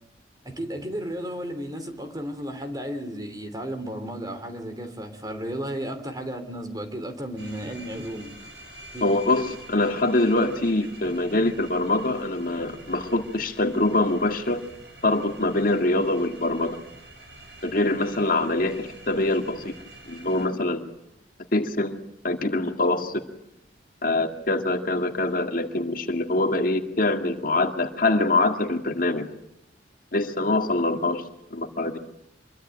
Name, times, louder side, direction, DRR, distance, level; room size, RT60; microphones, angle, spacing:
voice 1, 0.4-8.3 8.9-9.1, equal, 20° right, 8 dB, 3.2 m, -33 dB
sound 1, 7.4-20.5, right 1 dB, 60° right, 7.5 m, -47 dB
voice 2, 9.0-14.6 15.0-16.8 17.6-19.7 20.1-20.9 21.5-23.2 24.0-29.3 30.1-31.2 31.5-32.0, left 2 dB, 50° left, 5 dB, 2.1 m, -24 dB
26.5 x 23.0 x 9.1 m, 0.80 s
head